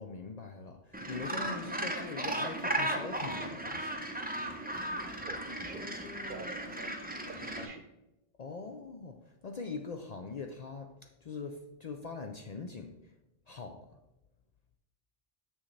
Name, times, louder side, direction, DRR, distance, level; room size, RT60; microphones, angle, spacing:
voice 1, 0.0-3.9 7.6-7.7 8.4-12.9 13.5-13.8, left 4 dB, 50° left, 4 dB, 0.5 m, -42 dB
Gull seagull, 0.9-7.7, right 1 dB, 10° right, 0.5 m, -36 dB
voice 2, 5.2-5.9 6.3-7.0 7.3-7.9, right 3 dB, 60° right, 6 dB, 0.9 m, -47 dB
7.2 x 6.2 x 3.2 m, 0.96 s
omnidirectional pair, 1.0 m